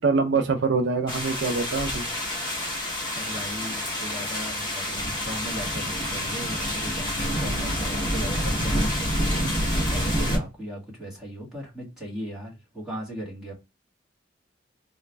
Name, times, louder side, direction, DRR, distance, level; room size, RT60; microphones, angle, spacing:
voice 1, 0.0-2.1, right 4 dB, 65° right, 0.5 m, -24 dB
sound 1, 1.1-10.4, equal, 25° left, 1.6 m, -28 dB
voice 2, 3.1-13.5, equal, 5° right, 1.8 m, -37 dB
3.9 x 2.1 x 3.3 m
head